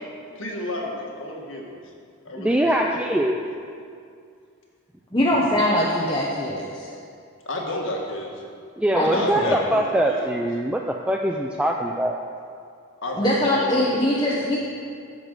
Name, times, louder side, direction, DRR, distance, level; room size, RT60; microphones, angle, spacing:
voice 1, 0.3-1.8 2.2-3.4 7.4-8.3 9.0-10.4 13.0-14.6, left 1 dB, 65° left, 0 dB, 1.8 m, -32 dB
voice 2, 2.4-3.4 8.8-12.2, right 1 dB, 5° right, 1 dB, 0.4 m, -22 dB
voice 3, 5.1-6.9 8.9-9.6 13.2-14.6, left 1 dB, 20° left, -5 dB, 1.0 m, -22 dB
11.5 x 7.1 x 6.6 m, 2.3 s
head